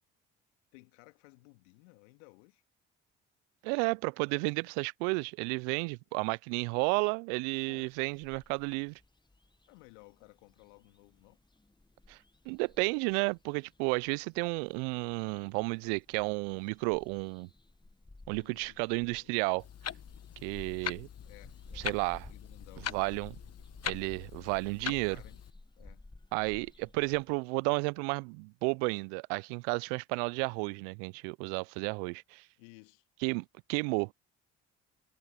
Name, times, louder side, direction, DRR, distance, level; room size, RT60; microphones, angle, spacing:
voice 1, 0.7-2.6 5.9-6.0 7.7-7.9 9.7-11.4 18.3-19.3 21.2-22.9 24.8-25.4 25.8-26.0 32.6-33.0, left 28 dB, 75° left, 2.3 m, -57 dB
voice 2, 3.6-9.0 12.1-12.2 12.5-17.5 18.3-19.6 20.4-21.1 21.8-22.3 22.9-23.4 23.8-25.2 26.3-32.5 33.2-34.1, right 34 dB, 75° right, 0.7 m, -32 dB
sound 1, 7.8-27.4, left 2 dB, 10° left, 1.6 m, -55 dB
Clock, 19.6-25.5, left 10 dB, 45° left, 1.3 m, -42 dB
hypercardioid pair, 50°, 35 cm